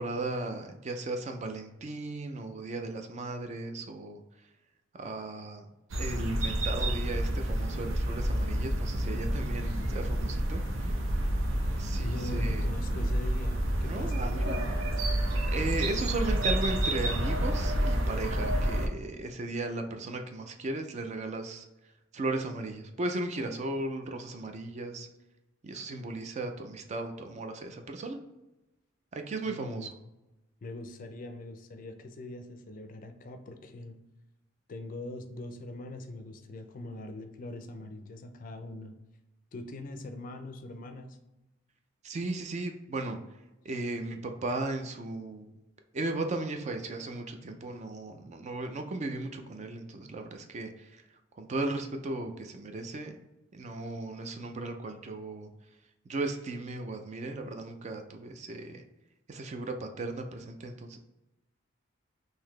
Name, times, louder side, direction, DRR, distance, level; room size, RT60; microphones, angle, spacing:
voice 1, 0.0-4.5 4.9-5.7 6.0-10.9 11.8-12.7 13.8-14.6 15.5-21.7 22.1-25.1 25.6-28.2 29.1-29.9 42.0-43.2 43.6-45.6 45.9-51.0 51.3-53.2 53.5-55.5 56.1-58.8 59.3-61.0, right 2 dB, 35° right, 5 dB, 0.4 m, -36 dB
sound 1, 5.9-18.9, right 1 dB, 85° right, 0.6 m, -29 dB
voice 2, 12.0-14.8 29.5-29.9 30.6-34.0 34.7-38.9 39.5-41.2, left 2 dB, 45° left, 7 dB, 0.4 m, -42 dB
3.8 x 2.7 x 3.1 m, 0.98 s
head